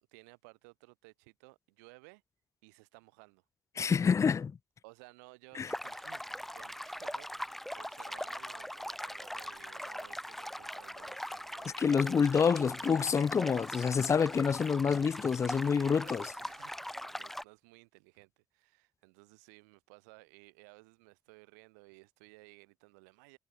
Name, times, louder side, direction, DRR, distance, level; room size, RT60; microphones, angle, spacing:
voice 1, 0.1-2.2 2.6-3.4 4.8-12.3 15.6-23.4, right 29 dB, 75° right, 4.8 m, -58 dB
voice 2, 3.8-4.6 5.6-5.7 11.8-16.3, left 6 dB, 35° left, 0.6 m, -27 dB
sound 1, 5.7-17.4, equal, 5° left, 1.2 m, -41 dB
figure-of-eight pair, 45°, 9 cm